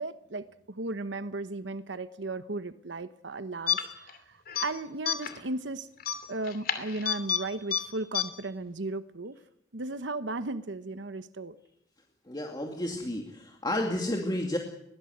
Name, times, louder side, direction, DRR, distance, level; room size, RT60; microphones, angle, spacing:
voice 1, 0.0-5.9 6.3-9.4 9.7-11.6, right 2 dB, 90° right, 12 dB, 1.0 m, -36 dB
sound 1, 3.7-4.2 4.5-4.7 5.1-5.4 6.0-7.4 7.7-7.8 8.1-8.2, left 9 dB, 55° left, 2.7 m, -29 dB
voice 2, 12.3-14.6, left 1 dB, 25° left, 2 dB, 2.4 m, -31 dB
21.5 x 18.5 x 8.0 m, 0.77 s
head